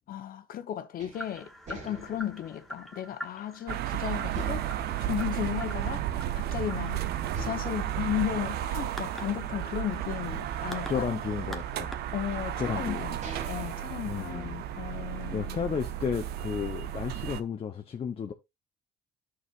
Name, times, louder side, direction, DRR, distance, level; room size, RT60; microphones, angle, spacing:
voice 1, 0.1-4.7 5.0-6.1 6.3-7.0 7.4-11.1 12.1-13.2 13.5-15.8, left 11 dB, 60° left, 1.2 m, -35 dB
thumps-wind, 1.0-3.8 4.3-6.3 6.6-6.7 7.3-9.7 10.2-11.8 12.6-12.7 13.0-14.8, right 2 dB, 45° right, 2.2 m, -45 dB
sound 1, 1.1-12.6, equal, ahead, 1.3 m, -46 dB
sound 2, 3.7-17.4, right 12 dB, 70° right, 0.7 m, -33 dB
voice 2, 10.9-12.0 12.6-13.1 14.1-14.5 15.3-18.3, left 7 dB, 35° left, 0.9 m, -33 dB
11.0 x 6.4 x 2.6 m
cardioid pair, 110°, 17 cm